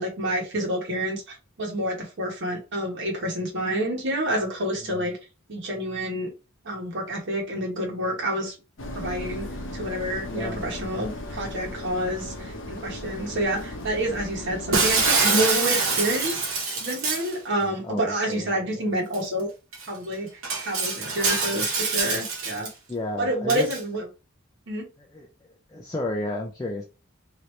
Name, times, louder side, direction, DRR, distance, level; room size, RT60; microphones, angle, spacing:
voice 1, 0.0-5.2 5.5-6.3 6.6-8.5 8.9-9.5 9.7-16.4 16.8-19.5 19.9-20.3 20.6-22.7 23.2-24.0 24.7-24.9, right 1 dB, 60° right, 1.1 m, -28 dB
sound 1, 8.8-15.1, left 1 dB, 60° left, 0.8 m, -36 dB
voice 2, 10.2-10.6 17.6-18.9 22.9-23.8 25.0-26.8, left 1 dB, 15° left, 0.5 m, -33 dB
Shatter, 14.7-17.3 19.1-19.2 19.7-19.8 20.4-22.7 23.5-23.8, right 4 dB, 75° right, 1.1 m, -25 dB
3.0 x 2.6 x 3.1 m
head